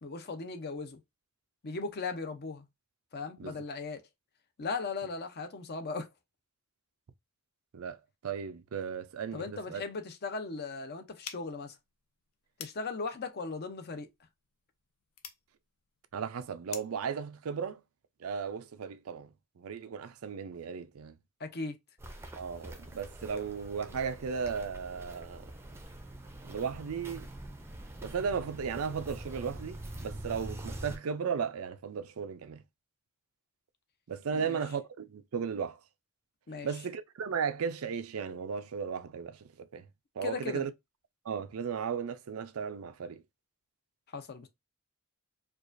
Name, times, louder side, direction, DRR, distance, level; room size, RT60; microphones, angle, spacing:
voice 1, 0.0-1.0 1.6-2.7 3.1-4.0 4.6-6.1 9.3-11.8 12.6-14.1 21.4-21.8 34.3-34.6 36.5-36.7 40.2-40.7 44.1-44.5, left 4 dB, 50° left, 0.6 m, -37 dB
voice 2, 8.2-9.4 9.7-9.8 16.1-17.8 18.2-19.3 19.6-21.2 22.4-25.5 26.4-27.3 28.0-32.6 34.1-35.8 36.6-39.8 40.2-40.7 41.3-43.2, right 6 dB, 80° right, 0.5 m, -35 dB
sound 1, 11.2-17.1, left 8 dB, 85° left, 0.6 m, -50 dB
Walk footsteps, 22.0-31.0, right 1 dB, 10° right, 0.5 m, -44 dB
4.6 x 2.4 x 2.5 m
head